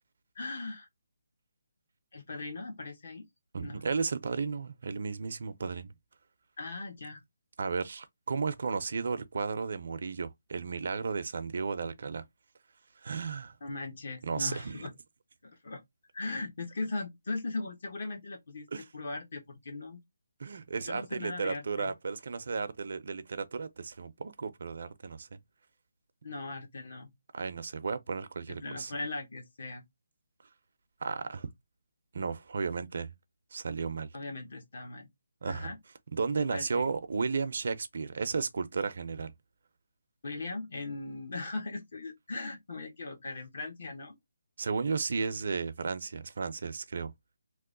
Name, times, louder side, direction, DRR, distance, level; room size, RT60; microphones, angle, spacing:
voice 1, 0.4-0.9 2.1-3.2 3.6-3.8 6.6-7.2 13.6-14.9 15.4-15.8 16.1-18.7 18.9-20.0 20.9-21.9 26.2-27.1 28.5-29.8 34.1-35.1 35.4-35.8 36.5-36.9 40.2-44.2, left 3 dB, 55° left, 1.1 m, -39 dB
voice 2, 3.5-5.9 7.6-12.2 13.0-13.5 14.2-14.9 18.7-18.8 20.4-25.4 27.3-28.9 31.0-31.5 32.1-33.1 33.5-34.1 35.4-35.7 36.1-39.3 44.6-47.1, right 5 dB, 60° right, 0.5 m, -34 dB
2.9 x 2.1 x 3.7 m
hypercardioid pair, 165°, 0 cm